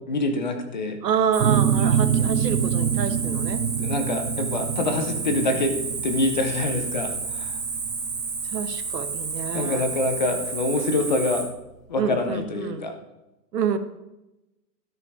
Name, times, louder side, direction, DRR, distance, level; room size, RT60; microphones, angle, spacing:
voice 1, 0.0-1.0 3.8-7.6 9.5-11.5 11.9-12.9, left 2 dB, 30° left, 6 dB, 0.8 m, -26 dB
voice 2, 1.0-3.6 4.8-5.6 8.4-9.9 12.0-12.9 13.5-13.8, right 7 dB, 80° right, 10 dB, 1.3 m, -28 dB
Cricket, 1.3-11.4, right 4 dB, 5° right, 0.9 m, -31 dB
sound 1, 1.4-10.8, right 8 dB, 55° right, 0.9 m, -26 dB
13.0 x 5.6 x 4.9 m, 0.95 s
hypercardioid pair, 175°, 49 cm